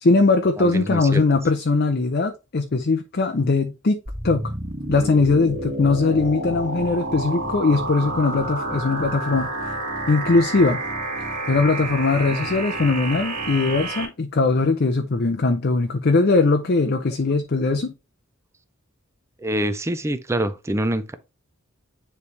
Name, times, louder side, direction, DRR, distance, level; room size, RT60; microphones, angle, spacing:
voice 1, 0.0-4.5 4.9-9.5 10.1-10.8 11.5-17.9, left 3 dB, 45° left, 0.6 m, -20 dB
voice 2, 0.6-1.2 12.3-12.4 19.4-21.1, right 1 dB, 15° right, 0.4 m, -25 dB
sound 1, 4.1-14.1, right 2 dB, 35° right, 2.1 m, -29 dB
9.5 x 3.3 x 3.3 m
head